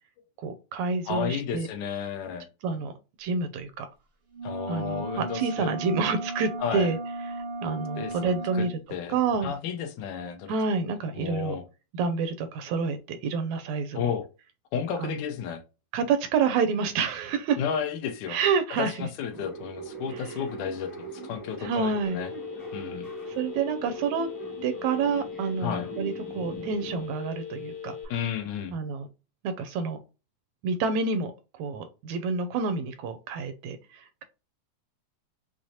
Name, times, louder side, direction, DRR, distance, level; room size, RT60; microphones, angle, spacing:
voice 1, 0.4-1.7 2.6-2.9 3.2-3.9 4.7-7.0 7.6-8.8 9.1-9.5 10.5-11.6 11.9-14.1 15.0-15.2 15.9-17.6 18.3-19.1 20.1-20.3 21.6-22.2 23.3-24.3 24.6-28.0 28.7-29.1 29.4-30.0 30.6-31.3 31.6-34.2, right 5 dB, 80° right, 9 dB, 1.7 m, -28 dB
voice 2, 1.1-2.5 4.4-5.7 6.6-6.9 8.0-9.2 9.4-10.5 11.2-11.6 13.9-14.3 14.7-15.6 17.6-18.4 18.8-22.3 22.7-23.1 25.6-25.9 28.1-28.8, left 7 dB, 80° left, 6 dB, 2.1 m, -32 dB
sound 1, 4.3-8.8, right 2 dB, 60° right, 0.8 m, -35 dB
sound 2, 19.3-27.1, right 4 dB, 20° left, 0.5 m, -42 dB
Telephone, 22.0-28.1, left 7 dB, 50° left, 1.2 m, -39 dB
6.1 x 2.0 x 2.7 m, 0.30 s
omnidirectional pair, 3.5 m